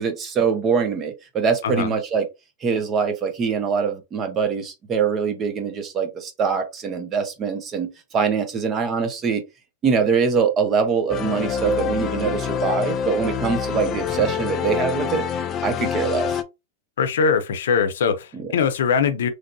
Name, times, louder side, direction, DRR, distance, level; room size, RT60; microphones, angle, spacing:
voice 1, 0.0-2.2 2.6-9.4 9.8-15.2 15.6-16.4 18.3-18.5, right 6 dB, 25° right, 0.8 m, -23 dB
sound 1, 11.1-16.4, left 7 dB, 30° left, 0.4 m, -26 dB
voice 2, 17.0-19.3, left 6 dB, 85° left, 0.6 m, -21 dB
3.3 x 2.6 x 2.6 m
supercardioid pair, 140°, 0 cm